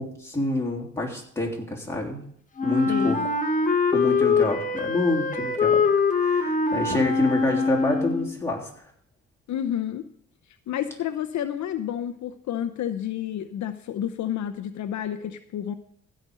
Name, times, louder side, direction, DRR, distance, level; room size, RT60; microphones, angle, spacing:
voice 1, 0.0-2.2 2.6-3.2 3.9-5.9 6.1-8.9, left 2 dB, 10° left, -2 dB, 3.3 m, -28 dB
Wind instrument woodwind instrument, 2.6-8.4, left 4 dB, 25° left, 1.4 m, -23 dB
voice 2, 2.9-3.3 9.5-10.1 10.7-15.7, left 10 dB, 70° left, 7 dB, 0.8 m, -30 dB
15.5 x 5.3 x 6.3 m, 0.64 s
cardioid pair, 90°, 30 cm